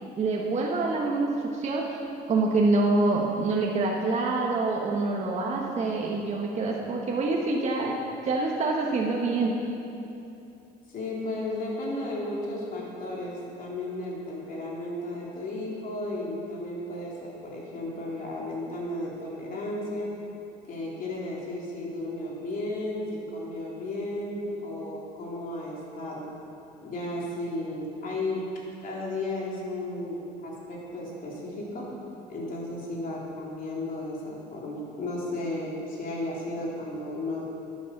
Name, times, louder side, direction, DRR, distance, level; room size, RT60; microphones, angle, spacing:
voice 1, 0.0-2.0 2.3-8.0 8.2-9.6, right 3 dB, 40° right, -1 dB, 1.3 m, -26 dB
voice 2, 10.9-20.1 20.7-26.3 26.8-28.4 28.8-31.9 32.3-37.4, left 1 dB, 55° left, -4 dB, 3.4 m, -34 dB
10.5 x 9.3 x 7.2 m, 2.8 s
cardioid pair, 110°, 17 cm